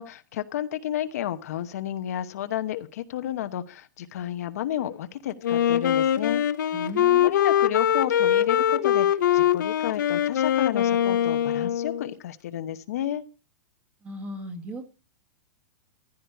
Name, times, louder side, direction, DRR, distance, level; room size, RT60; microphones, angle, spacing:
voice 1, 0.0-6.4 7.2-9.1 9.3-13.2, left 11 dB, 55° left, 10 dB, 1.0 m, -31 dB
Wind instrument woodwind instrument, 5.4-12.1, left 10 dB, 80° left, 0.8 m, -23 dB
voice 2, 6.7-7.4 14.0-14.8, right 1 dB, 15° right, 6 dB, 1.4 m, -37 dB
14.5 x 12.0 x 4.6 m, 0.34 s
supercardioid pair, 175°, 10 cm